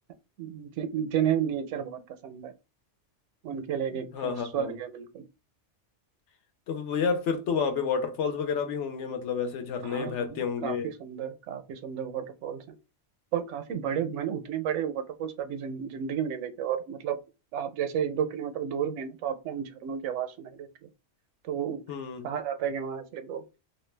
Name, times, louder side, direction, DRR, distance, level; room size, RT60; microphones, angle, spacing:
voice 1, 0.4-2.5 3.4-5.2 9.8-10.2 10.6-12.8 13.3-17.2 17.5-20.9 21.4-21.8 22.2-23.4, right 9 dB, 75° right, 0.9 m, -32 dB
voice 2, 4.1-4.7 6.7-10.9 21.9-22.3, left 6 dB, 75° left, 0.9 m, -30 dB
2.5 x 2.2 x 3.2 m
omnidirectional pair, 1.2 m